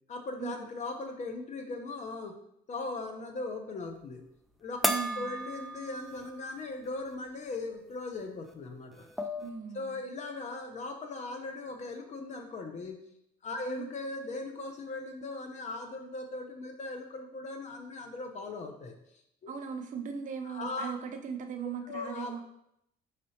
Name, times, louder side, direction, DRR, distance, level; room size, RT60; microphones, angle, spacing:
voice 1, 0.1-2.3 2.7-4.2 4.6-4.8 5.2-9.1 9.7-13.0 13.4-18.9 19.4-19.5 20.4-20.9 21.6-22.4, left 3 dB, 45° left, 5 dB, 0.8 m, -39 dB
sound 1, 4.8-6.5 6.9-7.0 8.5-8.6 8.9-9.6, equal, ahead, 0.3 m, -34 dB
voice 2, 4.8-5.4 9.4-10.0 13.7-13.9 19.5-22.4, right 7 dB, 50° right, 4 dB, 0.7 m, -38 dB
5.1 x 3.3 x 2.9 m, 0.76 s
cardioid pair, 110°, 17 cm